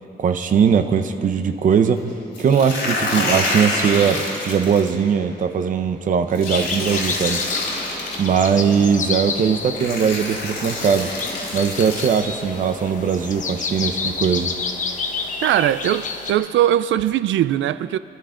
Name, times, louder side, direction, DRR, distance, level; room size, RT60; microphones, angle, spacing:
voice 1, 0.2-2.0 2.4-7.4 8.2-11.1 11.5-14.5, right 7 dB, 45° right, 0.7 m, -20 dB
sound 1, 2.3-4.9 6.4-8.2 9.2-9.3 9.7-12.2, left 2 dB, 80° left, 4.4 m, -26 dB
sound 2, 6.5-16.3, left 4 dB, 40° left, 1.0 m, -29 dB
voice 2, 15.4-18.0, right 12 dB, 90° right, 0.5 m, -20 dB
25.5 x 12.0 x 3.8 m
wide cardioid pair, 175°, 19 cm